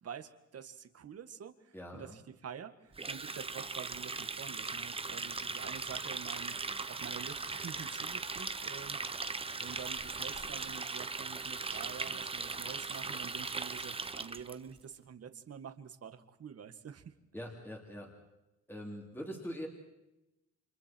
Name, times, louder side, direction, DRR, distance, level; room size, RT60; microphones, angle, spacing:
voice 1, 0.0-17.1, right 7 dB, 55° right, 9 dB, 2.0 m, -48 dB
voice 2, 1.7-2.2 17.3-18.1 18.7-19.7, equal, 5° left, 0 dB, 3.5 m, -43 dB
Water tap faucet, 2.9-14.5, right 4 dB, 20° right, 0.9 m, -39 dB
sound 1, 5.8-13.7, right 8 dB, 80° right, 1.9 m, -57 dB
sound 2, 9.3-10.6 12.1-12.2 12.4-12.5 13.2-14.5, left 2 dB, 65° left, 6.8 m, -61 dB
30.0 x 28.5 x 4.6 m, 0.94 s
wide cardioid pair, 170°, 30 cm